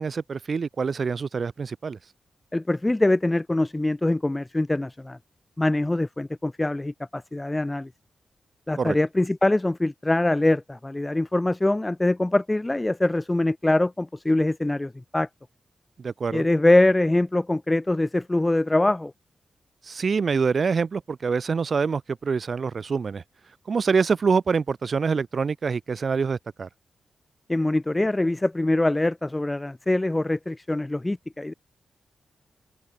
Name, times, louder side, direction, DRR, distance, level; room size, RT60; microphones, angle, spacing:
voice 1, 0.0-2.0 8.8-9.0 16.0-16.4 19.8-23.2 23.7-26.7, right 5 dB, 60° right, 2.4 m, -25 dB
voice 2, 2.5-5.2 5.6-7.9 8.7-15.3 16.3-19.1 27.5-31.5, left 2 dB, 20° left, 2.1 m, -23 dB
open air
supercardioid pair, 45°, 0 cm